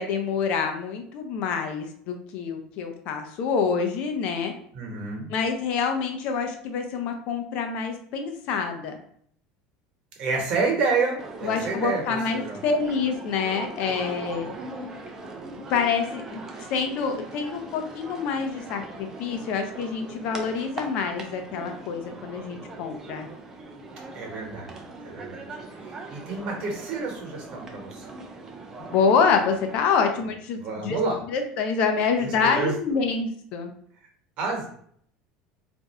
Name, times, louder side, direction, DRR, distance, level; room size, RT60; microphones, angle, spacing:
voice 1, 0.0-4.5 5.3-9.0 11.4-14.5 15.7-16.4 16.7-23.3 28.8-31.0 31.3-33.7, left 5 dB, 55° left, 5 dB, 0.6 m, -26 dB
voice 2, 4.7-5.3 10.2-12.6 24.1-24.8 25.0-25.4 25.8-28.1 30.6-31.2 32.2-32.7 34.4-34.7, right 4 dB, 45° right, 1 dB, 1.1 m, -29 dB
sound 1, 11.2-29.8, right 3 dB, 20° right, 0.4 m, -40 dB
2.6 x 2.3 x 4.1 m, 0.62 s
cardioid pair, 155°, 2 cm